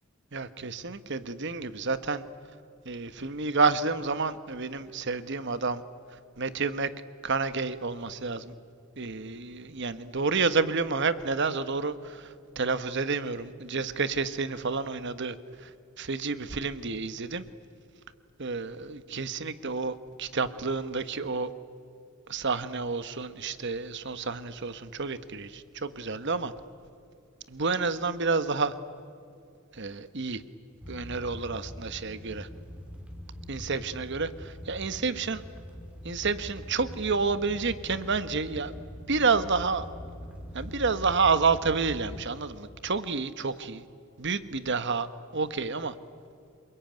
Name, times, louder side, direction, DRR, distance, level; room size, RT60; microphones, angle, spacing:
voice 1, 0.3-2.2 2.8-5.8 6.4-6.9 7.2-8.5 9.0-15.3 15.6-15.7 16.0-17.4 18.4-21.5 22.3-26.5 27.5-28.7 29.7-30.4 30.9-32.5 33.5-35.4 36.0-38.7 39.1-39.9 40.5-43.8 44.2-45.1 45.3-45.9, right 4 dB, 55° right, 13 dB, 1.2 m, -29 dB
sound 1, 30.8-42.3, equal, 5° right, 2.5 m, -43 dB
28.0 x 21.0 x 9.3 m, 2.6 s
head